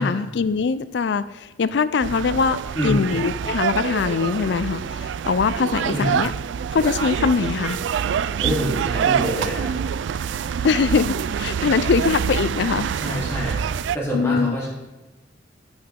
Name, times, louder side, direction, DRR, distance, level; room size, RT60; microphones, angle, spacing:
voice 1, 0.0-2.6 2.8-6.3 6.7-7.8 10.6-12.9 14.1-14.6, left 5 dB, 65° left, 15 dB, 0.4 m, -22 dB
sound 1, 2.0-14.0, right 7 dB, 70° right, 0.3 m, -26 dB
voice 2, 2.7-3.0 5.9-6.1 8.4-9.7 10.1-10.6 12.9-13.6 13.9-14.7, equal, 15° left, -6 dB, 3.4 m, -26 dB
10.5 x 8.8 x 3.7 m, 1.1 s
head